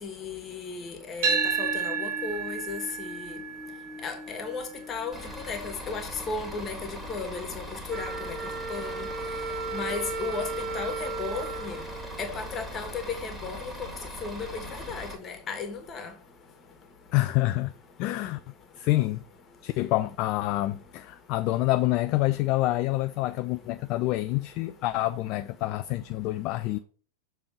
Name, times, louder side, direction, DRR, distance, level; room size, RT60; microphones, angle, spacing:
voice 1, 0.0-3.4 4.0-7.6 7.9-8.4 8.7-9.1 9.7-10.5 10.7-11.8 12.2-13.7 14.2-16.1, left 4 dB, 25° left, 1.6 m, -35 dB
sound 1, 1.2-9.4, right 5 dB, 50° right, 1.5 m, -34 dB
Bus / Idling, 5.1-15.1, equal, 5° right, 1.8 m, -40 dB
Wind instrument woodwind instrument, 7.9-12.7, right 4 dB, 20° right, 1.3 m, -35 dB
voice 2, 17.1-17.7 18.0-18.4 18.8-19.2 19.6-26.8, left 17 dB, 40° left, 0.3 m, -27 dB
6.9 x 3.3 x 5.6 m
figure-of-eight pair, 90°, 0 cm